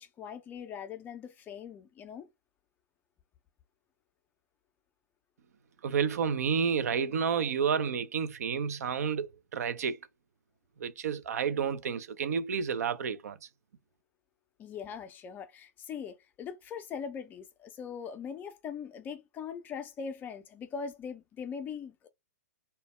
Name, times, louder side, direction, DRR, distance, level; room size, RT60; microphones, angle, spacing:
voice 1, 0.0-2.3 14.6-22.1, left 6 dB, 20° left, 0.4 m, -41 dB
voice 2, 5.8-10.0 10.8-13.4, right 6 dB, 60° right, 0.3 m, -30 dB
2.1 x 2.0 x 2.9 m
figure-of-eight pair, 110°, 9 cm